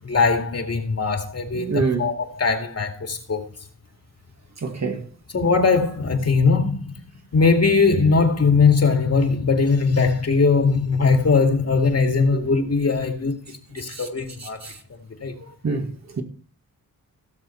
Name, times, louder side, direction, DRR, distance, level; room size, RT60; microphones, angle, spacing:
voice 1, 0.0-3.4 5.3-6.9 7.3-14.7 15.2-15.3, left 4 dB, 45° left, 2.2 m, -20 dB
voice 2, 1.5-2.1 4.6-5.0 12.3-12.4 13.8-14.1 14.4-14.8 15.4-16.2, right 4 dB, 50° right, 2.3 m, -27 dB
16.5 x 6.8 x 4.5 m
wide cardioid pair, 105°, 35 cm